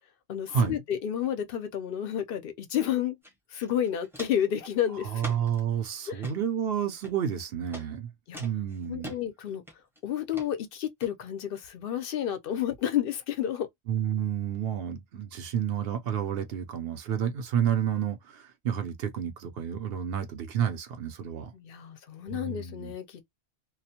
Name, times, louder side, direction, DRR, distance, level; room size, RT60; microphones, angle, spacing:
voice 1, 0.3-3.2 3.5-5.2 6.1-6.2 8.3-8.4 8.9-9.6 10.0-13.7 21.5-23.2, left 10 dB, 60° left, 0.7 m, -31 dB
Walk footsteps, 3.2-3.3 3.6-4.5 5.2-5.6 6.1-6.4 7.0-7.4 7.7-7.9 8.3-9.2 9.7-10.0 10.3-10.5 11.0-11.1, left 1 dB, 5° right, 0.6 m, -43 dB
voice 2, 5.0-8.1 8.4-9.1 13.9-21.5 22.3-22.9, right 8 dB, 65° right, 0.8 m, -30 dB
2.4 x 2.1 x 2.7 m
omnidirectional pair, 1.1 m